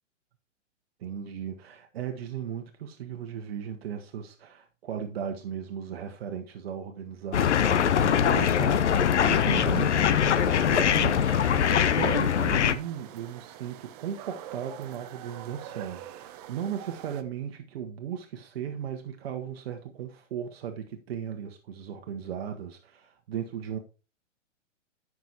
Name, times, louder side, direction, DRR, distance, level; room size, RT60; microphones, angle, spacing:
voice 1, 1.0-11.2 12.0-23.8, right 8 dB, 50° right, 1.2 m, -36 dB
sound 1, 7.3-12.7, left 8 dB, 65° left, 0.9 m, -22 dB
sound 2, 9.6-17.2, right 11 dB, 30° right, 0.7 m, -43 dB
14.5 x 6.1 x 2.9 m
figure-of-eight pair, 115°, 38 cm